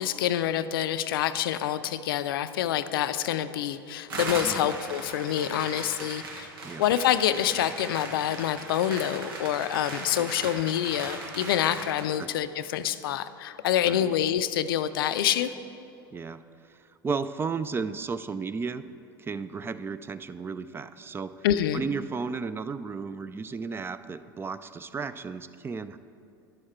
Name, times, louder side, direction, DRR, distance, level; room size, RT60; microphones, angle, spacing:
voice 1, 0.0-6.5 6.8-15.5 21.4-21.8, left 11 dB, 75° left, 13 dB, 0.4 m, -27 dB
sound 1, 4.1-12.1, right 3 dB, 80° right, 1.2 m, -38 dB
voice 2, 4.4-4.8 6.6-6.8 10.2-10.3 12.2-12.3 13.9-14.1 16.1-16.4 16.7-16.8 17.0-18.8 19.2-21.5 21.7-26.0, right 5 dB, 20° right, 13 dB, 0.3 m, -34 dB
10.5 x 6.5 x 4.3 m, 2.6 s
hypercardioid pair, 80°, 12 cm